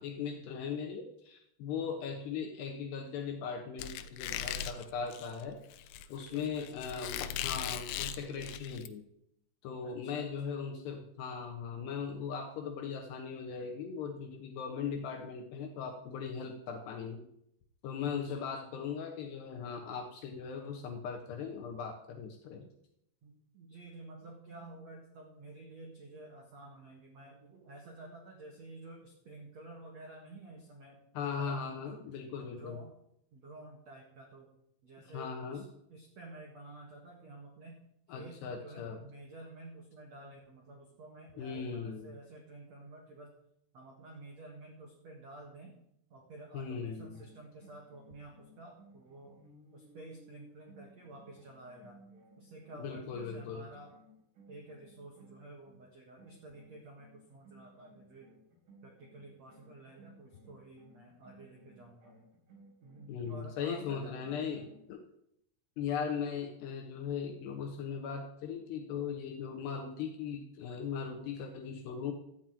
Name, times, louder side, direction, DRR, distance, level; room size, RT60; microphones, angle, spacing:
voice 1, 0.0-9.0 9.6-17.2 17.8-22.7 31.1-32.8 35.1-35.6 38.1-39.0 41.4-42.1 46.5-47.2 52.8-53.7 63.1-65.0 65.8-72.1, left 6 dB, 70° left, 3 dB, 2.7 m, -39 dB
Squeak, 3.8-8.9, left 9 dB, 90° left, 2.5 m, -39 dB
voice 2, 6.2-6.7 9.8-10.6 18.1-18.7 22.5-22.7 23.2-31.0 31.4-32.0 32.4-32.9 33.3-34.5 34.8-37.7 38.1-43.3 43.7-45.7 46.1-49.4 49.7-52.0 52.4-53.9 54.5-58.3 58.8-62.1 62.8-64.6, right 2 dB, 70° right, 0 dB, 1.6 m, -51 dB
sound 1, 47.1-55.8 56.2-64.9, right 1 dB, 45° right, 4.9 m, -60 dB
12.5 x 6.0 x 9.0 m, 0.76 s
omnidirectional pair, 5.9 m